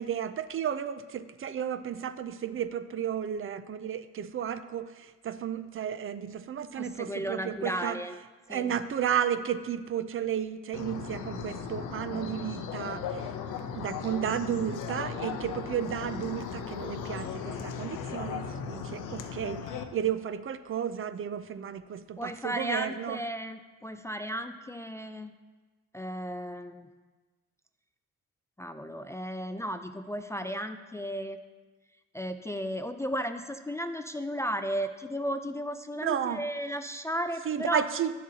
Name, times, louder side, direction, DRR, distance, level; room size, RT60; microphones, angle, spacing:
voice 1, 0.0-8.0 8.5-13.3 13.7-23.2 36.0-36.4 37.5-38.1, right 9 dB, 45° right, 12 dB, 0.5 m, -33 dB
voice 2, 6.8-8.1 8.5-8.7 22.2-25.3 25.9-26.9 28.6-31.4 32.1-37.8, equal, 10° left, 8 dB, 0.4 m, -34 dB
sound 1, 10.7-19.8, left 6 dB, 85° left, 0.8 m, -37 dB
11.0 x 7.4 x 2.8 m, 1.3 s
cardioid pair, 90°, 30 cm